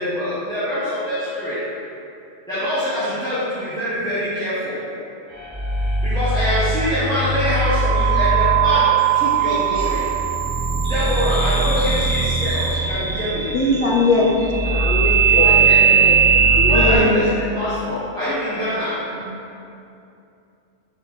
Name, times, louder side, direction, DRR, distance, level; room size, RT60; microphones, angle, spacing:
voice 1, 0.0-1.6 2.5-4.8 6.0-10.0 10.8-13.5 15.2-15.8 16.7-17.3 17.5-19.0, equal, 5° left, -14 dB, 1.3 m, -24 dB
sound 1, 5.3-17.0, right 5 dB, 25° right, 1.4 m, -19 dB
voice 2, 13.5-14.4 16.7-17.4 19.1-19.2, left 2 dB, 40° left, -4 dB, 0.6 m, -19 dB
voice 3, 14.6-17.3, left 2 dB, 55° left, -2 dB, 1.0 m, -27 dB
5.1 x 4.9 x 4.1 m, 2.7 s
omnidirectional pair, 1.2 m